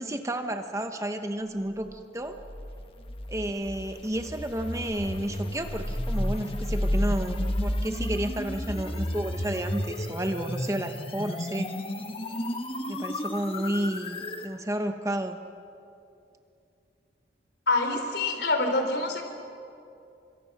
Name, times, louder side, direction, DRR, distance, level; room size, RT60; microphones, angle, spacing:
voice 1, 0.0-2.4 3.3-11.8 12.9-15.4, right 1 dB, 15° right, 6 dB, 1.1 m, -31 dB
sound 1, 2.4-14.5, left 1 dB, 30° left, 1.4 m, -32 dB
voice 2, 17.7-19.2, left 2 dB, 70° left, 5 dB, 3.7 m, -26 dB
30.0 x 26.0 x 6.0 m, 2.6 s
head